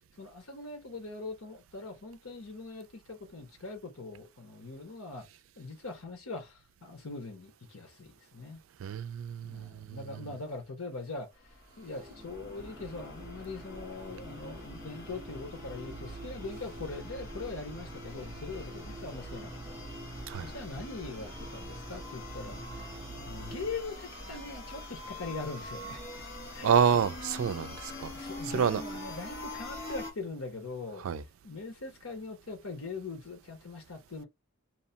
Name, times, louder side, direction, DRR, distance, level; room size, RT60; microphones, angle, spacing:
voice 1, 0.2-5.3 5.6-8.6 9.4-11.3 11.8-19.9 20.4-22.6 23.2-26.1 26.5-26.8 28.0-31.1 31.4-34.2, left 3 dB, 90° left, 1.1 m, -41 dB
voice 2, 8.8-10.3 20.3-20.5 26.6-28.1 28.5-28.8 31.0-31.2, right 7 dB, 75° right, 0.3 m, -28 dB
sound 1, 11.4-30.1, left 1 dB, 50° left, 1.1 m, -45 dB
sound 2, 11.8-23.7, right 2 dB, 20° right, 0.8 m, -46 dB
2.8 x 2.2 x 2.8 m
head